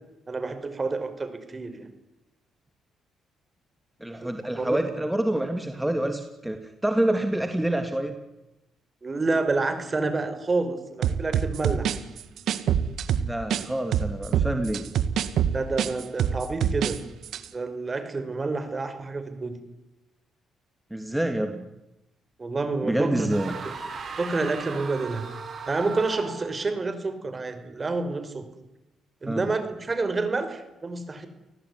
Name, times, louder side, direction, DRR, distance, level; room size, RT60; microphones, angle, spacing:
voice 1, 0.3-1.9 4.2-4.8 9.0-12.0 15.5-17.0 17.5-19.6 22.4-23.3 23.6-23.7 24.2-25.3 25.7-28.5 29.2-31.3, right 3 dB, 30° right, 10 dB, 5.4 m, -28 dB
voice 2, 4.0-8.1 13.2-14.8 20.9-21.7 22.9-23.6 29.3-29.4, right 1 dB, 10° right, 6 dB, 3.0 m, -27 dB
sound 1, 11.0-13.6 13.9-17.0 17.2-17.4, right 9 dB, 70° right, 1.9 m, -25 dB
sound 2, 23.3-26.6, right 5 dB, 50° right, 6.3 m, -37 dB
29.5 x 18.5 x 9.8 m, 0.93 s
supercardioid pair, 60°, 0 cm